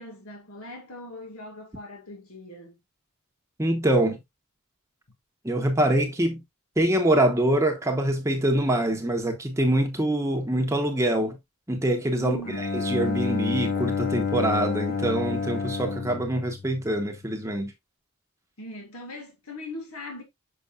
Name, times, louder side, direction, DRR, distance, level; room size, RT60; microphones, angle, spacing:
voice 1, 0.0-2.8 12.2-12.7 18.6-20.2, left 1 dB, 85° left, 1.9 m, -40 dB
voice 2, 3.6-4.2 5.4-6.4 6.8-11.4 11.7-17.7, right 1 dB, 15° right, 1.0 m, -24 dB
Bowed string instrument, 12.4-17.3, left 5 dB, 40° left, 0.7 m, -29 dB
6.8 x 5.8 x 2.4 m
head